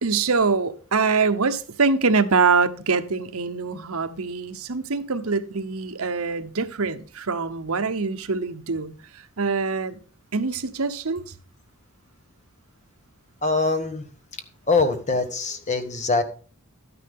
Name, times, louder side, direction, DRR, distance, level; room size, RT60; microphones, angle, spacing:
voice 1, 0.0-10.0 10.3-11.2, right 4 dB, 75° right, 1.0 m, -24 dB
voice 2, 13.4-14.1 14.7-16.2, left 3 dB, 30° left, 1.3 m, -23 dB
12.0 x 9.8 x 3.6 m
head